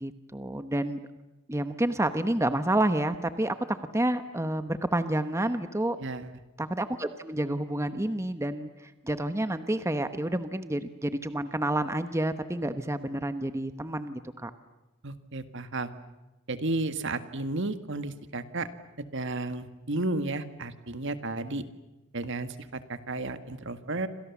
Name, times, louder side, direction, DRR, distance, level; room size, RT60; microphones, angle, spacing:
voice 1, 0.0-1.0 1.5-6.0 6.6-14.5, right 1 dB, 15° right, 10 dB, 1.0 m, -29 dB
voice 2, 6.0-6.4 15.0-15.9 16.5-18.7 19.0-21.6 22.1-24.1, right 2 dB, 60° right, 10 dB, 1.8 m, -33 dB
28.5 x 26.5 x 7.2 m, 1.0 s
head